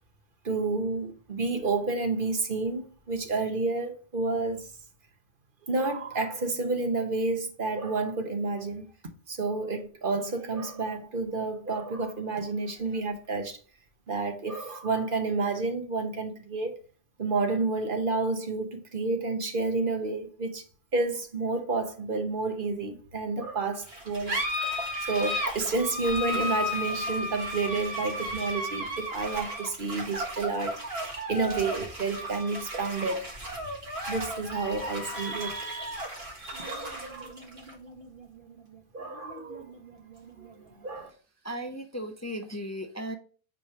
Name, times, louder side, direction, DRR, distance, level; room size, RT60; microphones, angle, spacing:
voice 1, 0.4-4.7 5.7-8.9 9.3-13.6 14.1-16.7 17.2-20.6 20.9-24.4 24.8-33.2 34.1-36.1 36.4-37.4 38.9-39.7 40.4-41.1, right 3 dB, 55° right, 1.3 m, -30 dB
sound 1, 23.8-40.8, equal, 75° right, 2.0 m, -35 dB
voice 2, 41.4-43.2, equal, 20° left, 0.6 m, -36 dB
9.1 x 3.1 x 5.7 m
omnidirectional pair, 1.1 m